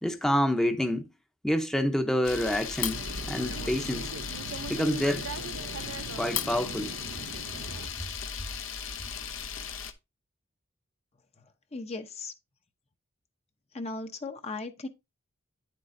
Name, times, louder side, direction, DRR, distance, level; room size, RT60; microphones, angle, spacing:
voice 1, 0.0-1.1 1.4-4.1 4.7-5.2 6.2-6.9, equal, 5° left, 0.7 m, -27 dB
Camera, 2.2-9.9, left 7 dB, 70° left, 0.8 m, -36 dB
sound 1, 2.9-7.9, right 4 dB, 80° right, 0.6 m, -40 dB
voice 2, 11.7-12.3 13.7-14.9, left 3 dB, 30° left, 0.7 m, -37 dB
9.7 x 7.6 x 2.6 m
head